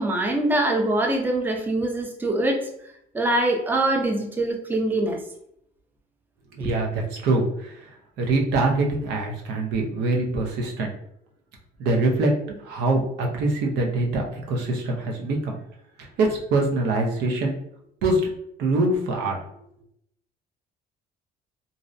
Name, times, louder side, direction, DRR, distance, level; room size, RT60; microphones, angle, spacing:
voice 1, 0.0-2.7 3.1-5.2 6.6-6.7, right 1 dB, 10° right, 1 dB, 0.5 m, -23 dB
voice 2, 6.5-10.9 11.8-15.6 16.0-17.6 18.0-18.2 18.6-19.4, right 2 dB, 80° right, 1 dB, 0.6 m, -24 dB
2.5 x 2.0 x 2.5 m, 0.73 s
cardioid pair, 110°, 17 cm